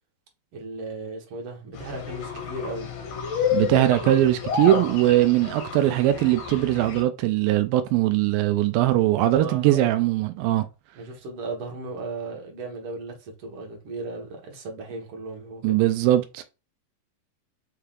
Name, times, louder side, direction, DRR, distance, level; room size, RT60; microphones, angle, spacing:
voice 1, 0.5-2.9 9.2-10.0 11.0-15.8, right 3 dB, 60° right, 1.6 m, -36 dB
sound 1, 1.7-7.0, left 7 dB, 60° left, 2.0 m, -30 dB
voice 2, 3.5-10.6 15.6-16.4, right 14 dB, 85° right, 2.3 m, -21 dB
5.7 x 3.3 x 2.4 m
omnidirectional pair, 4.0 m